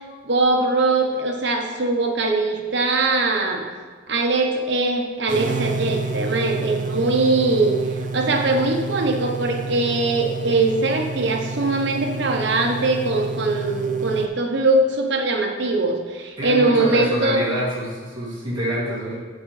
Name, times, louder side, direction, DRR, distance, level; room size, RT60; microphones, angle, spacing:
voice 1, 0.0-3.6 4.1-17.4, right 2 dB, 65° right, 2 dB, 1.0 m, -21 dB
sound 1, 5.3-14.3, right 3 dB, 40° right, 0.5 m, -29 dB
voice 2, 16.4-19.2, right 1 dB, 20° right, -8 dB, 2.5 m, -26 dB
7.9 x 7.9 x 3.3 m, 1.5 s
head